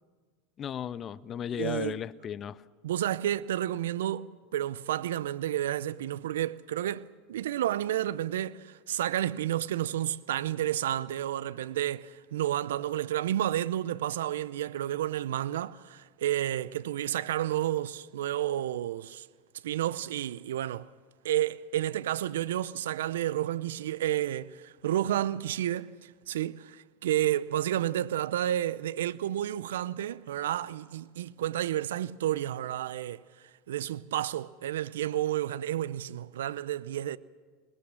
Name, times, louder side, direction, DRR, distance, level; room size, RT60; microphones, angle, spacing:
voice 1, 0.6-2.6, left 9 dB, 35° left, 0.7 m, -35 dB
voice 2, 1.6-2.0 2.8-19.3 19.6-20.9 21.2-25.9 26.3-33.2 33.7-37.2, right 12 dB, 80° right, 0.5 m, -31 dB
22.5 x 20.5 x 7.3 m
hypercardioid pair, 90°, 0 cm